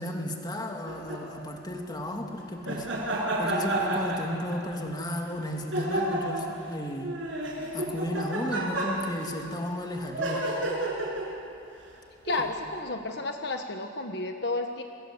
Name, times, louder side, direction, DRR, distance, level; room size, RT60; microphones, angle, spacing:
voice 1, 0.0-7.2 7.7-10.5 12.4-12.5, left 1 dB, 20° left, 1 dB, 2.8 m, -34 dB
sound 1, 0.9-1.2 2.6-4.8 5.7-6.5 7.0-9.3 10.1-11.4 12.2-12.5, right 1 dB, 80° right, 7.2 m, -30 dB
voice 2, 12.2-14.8, left 2 dB, 60° left, 5 dB, 1.3 m, -32 dB
30.0 x 23.5 x 8.2 m, 2.8 s
head